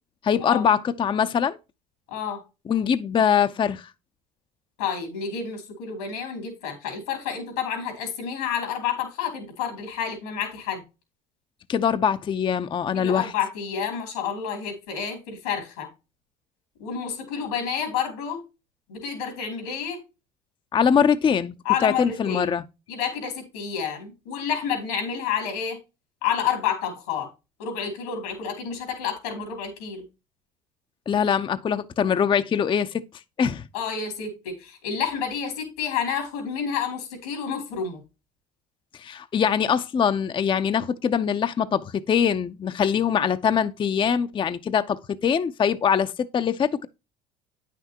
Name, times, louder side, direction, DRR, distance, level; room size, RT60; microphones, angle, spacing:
voice 1, 0.2-1.6 2.7-3.9 11.7-13.3 20.7-21.5 21.8-22.6 31.1-33.0 33.4-33.6 39.0-46.9, left 7 dB, 25° left, 0.5 m, -23 dB
voice 2, 2.1-2.4 4.8-10.8 12.9-15.9 16.8-18.4 18.9-20.0 21.6-22.5 22.9-25.8 26.2-27.3 27.6-30.0 33.7-38.0, left 7 dB, 85° left, 2.8 m, -29 dB
9.1 x 5.9 x 2.8 m
supercardioid pair, 80°, 18 cm